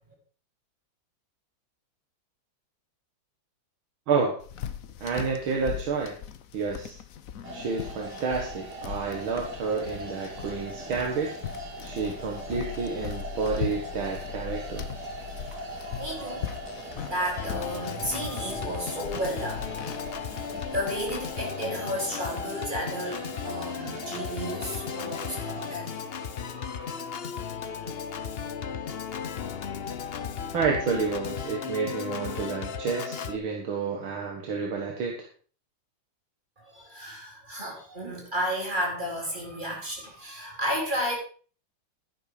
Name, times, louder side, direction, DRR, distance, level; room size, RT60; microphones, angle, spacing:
voice 1, 4.1-4.4 5.0-6.2 6.5-7.0 7.5-11.3 11.8-14.9 30.5-35.2, right 5 dB, 85° right, 0 dB, 2.5 m, -30 dB
sound 1, 4.4-21.3, left 8 dB, 55° left, 1.0 m, -39 dB
sound 2, 7.4-25.7, right 1 dB, 55° right, 3.0 m, -40 dB
voice 2, 15.8-20.3 20.7-27.1 36.6-41.2, equal, 20° right, -1 dB, 4.2 m, -33 dB
Organ, 17.4-33.4, left 7 dB, 75° left, 0.5 m, -35 dB
11.5 x 11.0 x 5.0 m, 0.42 s
omnidirectional pair, 2.2 m